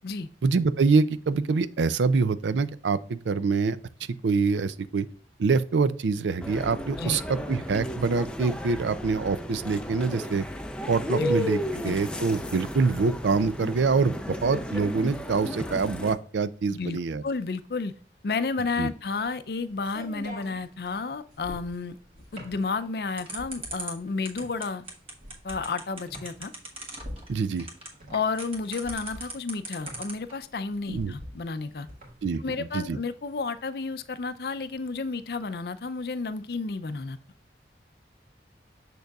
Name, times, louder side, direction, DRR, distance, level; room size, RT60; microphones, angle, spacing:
voice 1, 0.4-3.8 4.2-5.1 5.4-10.4 10.9-11.6 11.8-17.2 18.8-18.9 27.3-27.7 30.9-31.1 32.2-33.0, right 4 dB, 90° right, 15 dB, 0.4 m, -25 dB
sound 1, 6.4-16.1, equal, 5° left, 0.5 m, -34 dB
voice 2, 16.7-17.9 18.2-22.0 22.3-24.9 25.4-26.5 28.1-31.9 32.4-37.2, left 4 dB, 60° left, 12 dB, 0.5 m, -31 dB
sound 2, 18.8-32.4, equal, 45° right, 1.9 m, -45 dB
sound 3, 23.2-30.3, right 2 dB, 30° right, 1.1 m, -38 dB
6.7 x 6.5 x 2.3 m, 0.42 s
head